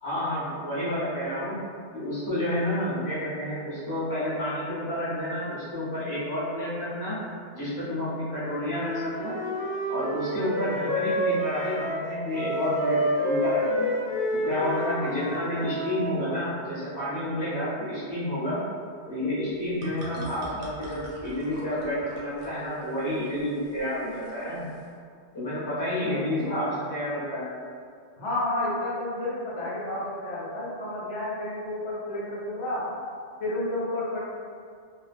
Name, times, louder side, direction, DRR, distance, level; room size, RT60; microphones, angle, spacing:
voice 1, 0.0-1.6 1.9-7.2 7.5-9.4 9.9-14.0 14.4-18.6 19.1-24.7 25.3-27.5, left 1 dB, 20° left, -11 dB, 0.8 m, -30 dB
Wind instrument woodwind instrument, 8.7-16.1, equal, 50° left, 0.7 m, -29 dB
sound 1, 19.4-24.9, right 1 dB, 85° right, 1.0 m, -46 dB
voice 2, 26.1-26.8 28.2-32.9 33.4-34.2, left 1 dB, 75° left, -8 dB, 1.0 m, -31 dB
2.5 x 2.2 x 2.5 m, 2.2 s
omnidirectional pair, 1.2 m